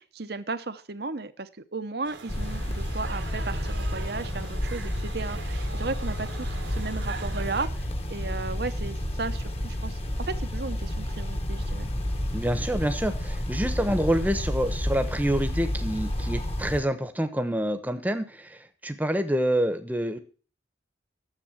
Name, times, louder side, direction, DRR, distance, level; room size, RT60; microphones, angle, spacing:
voice 1, 0.0-11.9, right 3 dB, 55° right, 11 dB, 0.9 m, -35 dB
sound 1, 2.0-7.7, right 4 dB, 75° right, 1.6 m, -42 dB
sound 2, 2.3-16.8, left 1 dB, 35° left, 1.3 m, -30 dB
voice 2, 12.3-20.2, equal, 10° right, 8 dB, 1.0 m, -27 dB
10.5 x 7.5 x 7.3 m, 0.40 s
head